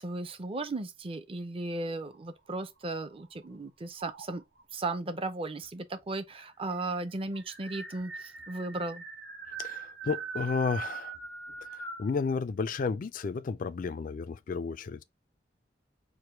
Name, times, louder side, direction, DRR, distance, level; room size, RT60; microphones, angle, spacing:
voice 1, 0.0-4.4 4.7-9.0, right 2 dB, 30° right, 0.6 m, -36 dB
sound 1, 2.0-3.5 4.0-4.6 5.6-5.7 6.0-6.1 6.4-12.1, right 5 dB, 85° right, 1.3 m, -42 dB
voice 2, 9.6-11.1 11.6-15.0, left 5 dB, 50° left, 0.4 m, -32 dB
4.8 x 2.2 x 4.4 m
head